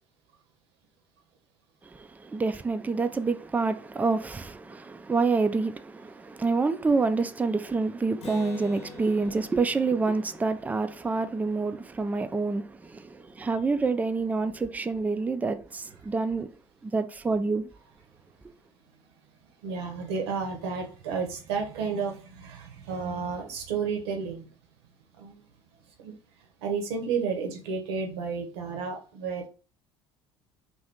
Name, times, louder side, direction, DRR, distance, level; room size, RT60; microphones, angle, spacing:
voice 1, 1.8-16.5 16.8-17.7, right 4 dB, 10° right, 0.3 m, -27 dB
Acoustic guitar, 8.2-11.9, left 3 dB, 45° left, 0.8 m, -45 dB
voice 2, 19.4-24.5 25.1-25.4 26.0-26.2 26.6-29.5, right 5 dB, 70° right, 0.8 m, -32 dB
2.6 x 2.6 x 3.5 m
figure-of-eight pair, 60°, 14 cm